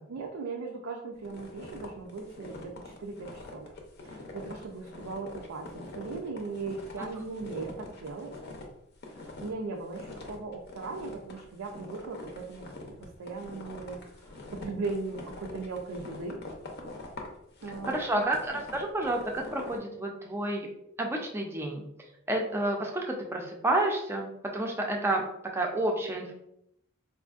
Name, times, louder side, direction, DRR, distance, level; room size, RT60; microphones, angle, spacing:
voice 1, 0.1-3.7 4.0-8.4 9.1-12.7 13.0-16.4 17.6-18.0, right 3 dB, 90° right, 0 dB, 0.5 m, -38 dB
sound 1, 1.2-8.7 8.9-9.6 9.9-19.8, left 2 dB, 50° left, 0.6 m, -44 dB
voice 2, 17.9-20.7 21.0-21.8 22.3-25.2 25.5-26.3, right 1 dB, 10° right, 1 dB, 0.4 m, -30 dB
4.3 x 2.5 x 2.4 m, 0.77 s
head